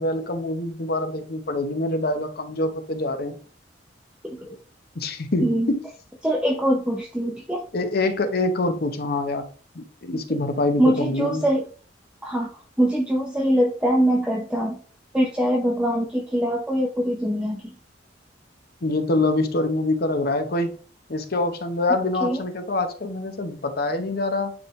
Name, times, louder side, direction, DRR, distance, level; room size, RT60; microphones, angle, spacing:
voice 1, 0.0-3.4 4.5-4.6 4.9-5.8 7.7-9.5 9.7-11.5 18.8-20.7 21.1-24.5, left 2 dB, 55° left, 7 dB, 0.9 m, -25 dB
voice 2, 5.4-5.7 6.2-7.7 10.3-10.4 10.8-11.6 12.2-14.8 15.1-17.7 22.2-22.4, equal, 5° right, -1 dB, 0.6 m, -23 dB
9.4 x 3.4 x 3.1 m, 0.41 s
head